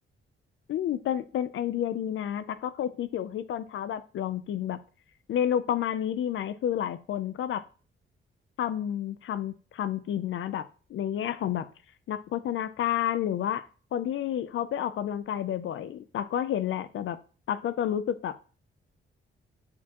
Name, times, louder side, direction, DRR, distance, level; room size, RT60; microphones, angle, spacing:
voice 1, 0.7-4.8 5.3-7.6 8.6-11.7 12.1-13.7 13.9-17.2 17.5-18.4, left 10 dB, 70° left, 13 dB, 0.5 m, -30 dB
8.5 x 4.4 x 2.9 m, 0.37 s
wide cardioid pair, 160°, 21 cm